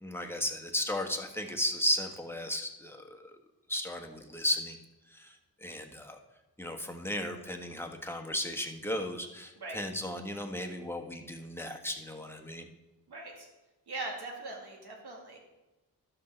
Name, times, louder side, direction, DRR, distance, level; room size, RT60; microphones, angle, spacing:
voice 1, 0.0-3.3 3.7-4.8 5.1-5.4 5.6-6.2 6.6-12.6, left 1 dB, 5° left, 4 dB, 1.2 m, -35 dB
voice 2, 13.1-13.5 13.9-15.4, right 2 dB, 80° right, 0 dB, 2.2 m, -40 dB
12.0 x 6.0 x 4.4 m, 1.1 s
cardioid pair, 55°, 39 cm